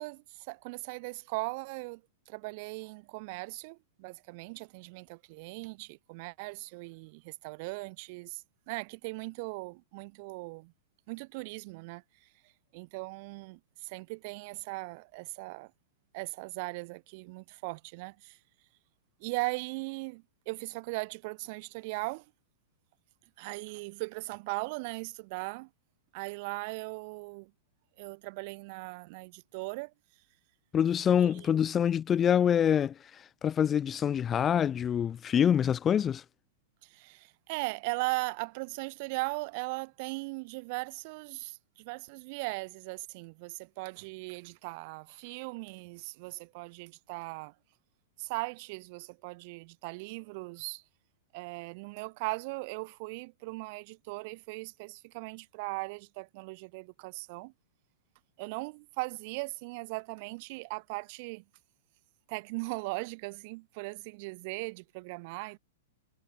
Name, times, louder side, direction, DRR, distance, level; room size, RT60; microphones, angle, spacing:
voice 1, 0.0-2.0 2.3-10.7 11.1-12.0 12.7-15.7 16.1-18.4 19.2-22.3 23.4-25.7 26.1-27.5 28.0-29.9 31.2-31.5 36.8-47.5 48.2-50.8 51.3-57.5 58.4-61.4 62.3-65.6, right 27 dB, 50° right, 6.0 m, -39 dB
voice 2, 30.7-36.2, left 8 dB, 25° left, 3.1 m, -26 dB
hypercardioid pair, 125°, 0 cm